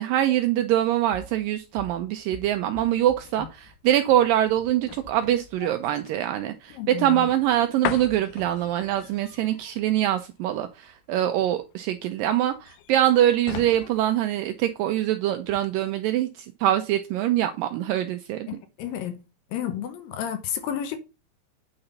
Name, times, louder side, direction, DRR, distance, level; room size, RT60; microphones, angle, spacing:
voice 1, 0.0-18.6, right 12 dB, 90° right, 2.0 m, -24 dB
sound 1, 0.7-15.1 15.4-15.7, left 12 dB, 90° left, 2.7 m, -41 dB
voice 2, 6.8-7.3 18.5-19.2 19.5-21.0, left 9 dB, 75° left, 2.4 m, -31 dB
8.9 x 3.9 x 5.4 m
omnidirectional pair, 4.5 m